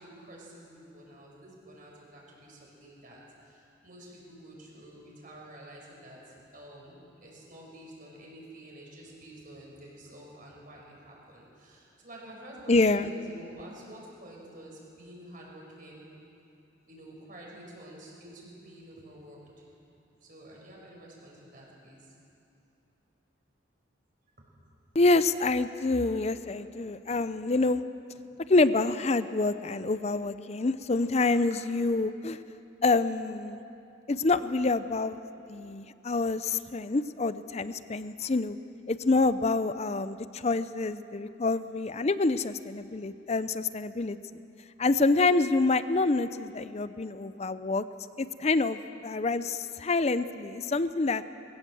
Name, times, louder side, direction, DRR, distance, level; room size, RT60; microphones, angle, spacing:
voice 1, 0.0-16.1 16.9-19.7 20.2-22.2 24.4-24.5 31.2-31.3, right 1 dB, 45° right, -2 dB, 5.3 m, -49 dB
voice 2, 12.7-13.1 24.9-27.8 28.5-32.4 32.8-33.6 34.1-35.2 35.5-38.6 38.9-44.2 44.8-47.9 48.2-51.2, left 3 dB, 35° left, 13 dB, 0.5 m, -27 dB
21.0 x 17.0 x 7.7 m, 2.7 s
head